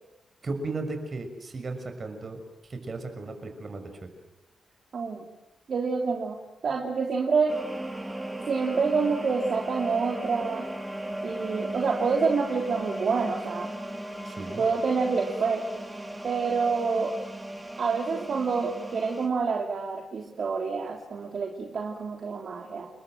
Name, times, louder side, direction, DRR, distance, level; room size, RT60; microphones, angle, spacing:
voice 1, 0.4-2.4 2.7-4.1 14.2-14.6, right 3 dB, 40° right, 6 dB, 6.1 m, -35 dB
voice 2, 4.9-5.2 5.7-7.5 8.5-10.7 11.2-13.7 14.6-15.7 16.2-17.1 17.8-22.9, right 5 dB, 55° right, 1 dB, 3.1 m, -27 dB
sound 1, 7.5-19.3, right 1 dB, 10° right, 4.4 m, -36 dB
29.5 x 21.5 x 7.8 m, 0.94 s
cardioid pair, 110°, 0 cm